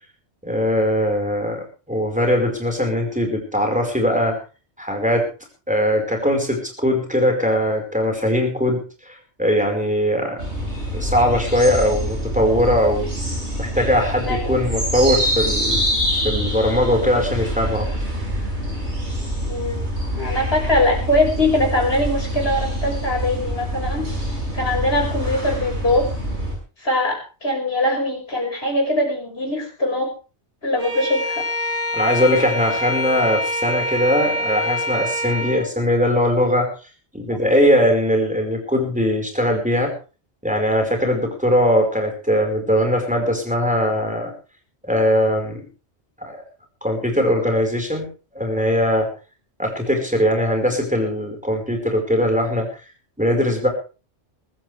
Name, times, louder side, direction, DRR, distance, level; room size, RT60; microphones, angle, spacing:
voice 1, 0.4-4.4 4.8-5.3 5.7-10.4 10.9-13.1 13.6-15.8 16.1-17.9 31.9-36.7 37.1-39.9 40.4-44.3 44.8-45.6 46.2-46.4 46.8-48.1 48.3-49.1 49.6-52.7 53.2-53.7, equal, 5° right, 2 dB, 5.0 m, -20 dB
sound 1, 10.4-26.5, equal, 75° right, 6.5 m, -25 dB
voice 2, 19.4-19.8 20.1-24.1 24.5-26.1 26.8-30.1 30.6-31.4 37.3-37.4, left 1 dB, 60° left, 0 dB, 6.1 m, -22 dB
Bowed string instrument, 30.8-35.7, left 1 dB, 25° right, 6.4 m, -25 dB
22.5 x 14.0 x 3.5 m, 0.35 s
omnidirectional pair, 1.2 m